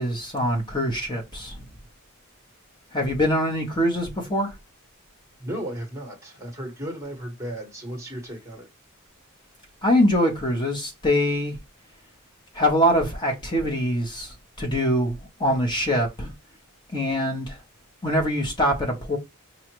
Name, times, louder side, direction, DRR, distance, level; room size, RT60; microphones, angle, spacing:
voice 1, 0.0-1.6 2.9-4.5 9.8-11.6 12.5-16.3 16.9-17.6 18.0-19.2, equal, 20° left, 1.0 m, -23 dB
voice 2, 5.4-8.7, right 1 dB, 15° right, 1.2 m, -35 dB
5.1 x 2.4 x 2.9 m
head